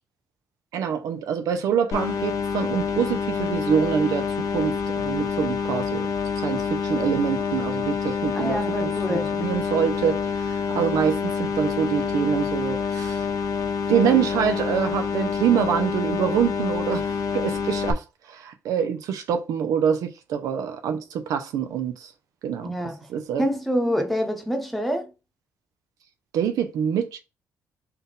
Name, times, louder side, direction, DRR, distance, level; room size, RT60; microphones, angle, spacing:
voice 1, 0.7-13.3 13.9-22.1 22.4-22.7 23.1-23.5 26.3-27.2, right 8 dB, 75° right, 0.6 m, -25 dB
sound 1, 1.9-17.9, left 6 dB, 65° left, 0.7 m, -27 dB
voice 2, 8.3-9.3 22.6-23.1 23.4-25.1, equal, ahead, 1.1 m, -26 dB
3.5 x 2.8 x 3.6 m
supercardioid pair, 65°, 6 cm